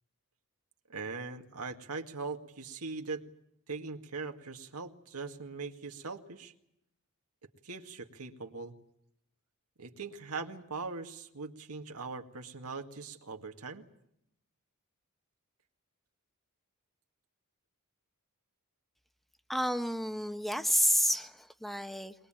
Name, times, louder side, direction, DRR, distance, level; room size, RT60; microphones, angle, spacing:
voice 1, 0.9-3.2 3.7-6.5 7.6-8.8 9.8-13.8, right 4 dB, 80° right, 5 dB, 2.1 m, -41 dB
voice 2, 19.5-22.1, equal, ahead, 9 dB, 1.0 m, -30 dB
22.0 x 21.5 x 9.0 m, 0.77 s
head